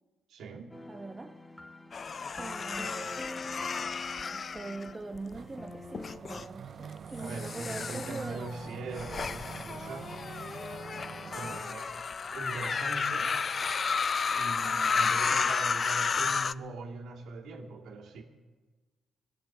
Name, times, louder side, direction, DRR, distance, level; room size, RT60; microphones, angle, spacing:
voice 1, 0.3-0.8 7.2-10.2 11.3-13.3 14.3-18.2, right 3 dB, 80° right, -1 dB, 2.5 m, -41 dB
sound 1, 0.7-6.2, left 2 dB, 10° left, 1.1 m, -46 dB
voice 2, 0.9-1.4 2.4-3.4 4.2-8.5, right 3 dB, 20° right, 5 dB, 1.0 m, -42 dB
sound 2, 1.9-5.4 5.9-6.4 7.2-16.5, left 5 dB, 40° left, 0.4 m, -32 dB
sound 3, 5.3-11.6, right 7 dB, 55° right, 0.5 m, -45 dB
19.5 x 8.8 x 6.8 m, 1.3 s
cardioid pair, 90°, 0 cm